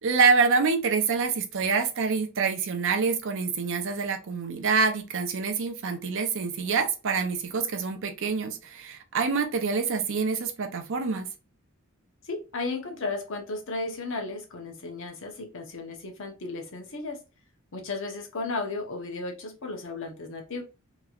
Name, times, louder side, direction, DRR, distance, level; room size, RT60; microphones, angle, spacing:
voice 1, 0.0-11.3, right 5 dB, 60° right, 0.6 m, -26 dB
voice 2, 12.2-17.2 17.7-20.6, left 3 dB, 65° left, 0.9 m, -34 dB
3.0 x 2.9 x 2.4 m
head